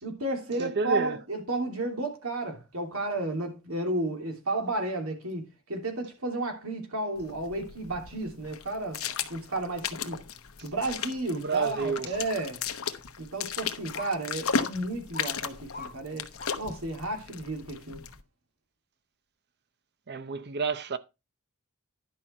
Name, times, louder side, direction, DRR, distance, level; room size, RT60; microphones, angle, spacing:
voice 1, 0.0-9.0 9.3-10.2 10.6-12.6 13.2-16.2 16.6-18.1, right 2 dB, 70° right, 3.0 m, -32 dB
voice 2, 0.6-1.2 11.3-12.1 20.1-21.0, right 4 dB, 50° right, 0.6 m, -30 dB
sound 1, 7.2-18.2, left 6 dB, 70° left, 1.0 m, -36 dB
sound 2, 12.1-12.2 12.9-13.0 14.0-14.1 14.5-14.7 15.1-15.3 15.7-15.9 16.4-16.6 17.1-17.2, left 3 dB, 40° left, 1.9 m, -41 dB
11.0 x 5.7 x 4.3 m
head